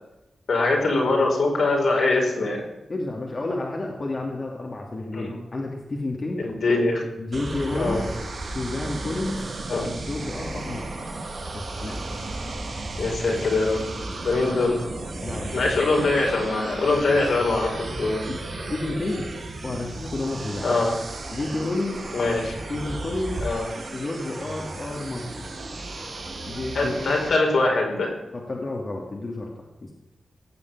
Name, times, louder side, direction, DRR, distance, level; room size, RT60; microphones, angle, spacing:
voice 1, 0.5-2.6 5.1-5.3 6.4-7.0 7.7-8.0 9.7-9.9 13.0-13.8 14.2-14.8 15.5-18.2 20.6-21.0 22.1-22.6 23.4-23.6 26.7-28.1, left 3 dB, 75° left, 0 dB, 4.9 m, -22 dB
voice 2, 2.9-6.4 7.2-8.0 8.5-9.4 10.1-10.9 11.5-12.0 15.2-15.5 17.1-17.2 18.0-18.4 18.7-19.3 19.6-20.8 21.3-22.0 22.7-23.5 23.9-25.5 26.5-27.3 28.3-29.5 29.8-30.0, left 2 dB, 45° left, -1 dB, 2.7 m, -30 dB
sound 1, 7.3-27.3, right 2 dB, 65° right, 4.5 m, -34 dB
17.0 x 7.1 x 8.9 m, 0.98 s
cardioid pair, 60°, 0 cm